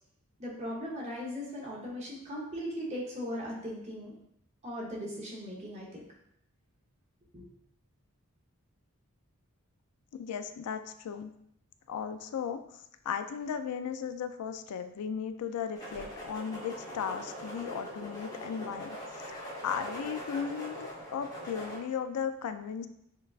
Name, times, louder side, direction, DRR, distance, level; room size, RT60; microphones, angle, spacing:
voice 1, 0.4-4.1 4.6-6.0 7.3-7.4, equal, 30° right, -3 dB, 0.9 m, -38 dB
voice 2, 10.1-11.3 11.9-12.6 13.1-19.0 19.3-22.9, left 7 dB, 85° left, 10 dB, 0.3 m, -36 dB
sound 1, 15.7-21.8, equal, 15° left, 0.8 m, -42 dB
6.4 x 2.3 x 2.4 m, 0.75 s
head